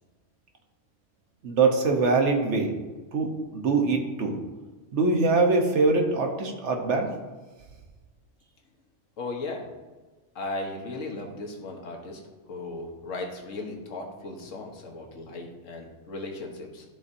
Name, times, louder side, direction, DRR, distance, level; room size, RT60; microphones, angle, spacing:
voice 1, 1.4-2.7 3.1-4.4 4.9-7.1, right 3 dB, 70° right, 2 dB, 1.2 m, -23 dB
voice 2, 9.2-9.7 10.3-12.2 12.5-16.8, left 2 dB, 85° left, 1 dB, 1.4 m, -36 dB
11.5 x 4.2 x 2.6 m, 1.3 s
omnidirectional pair, 1.3 m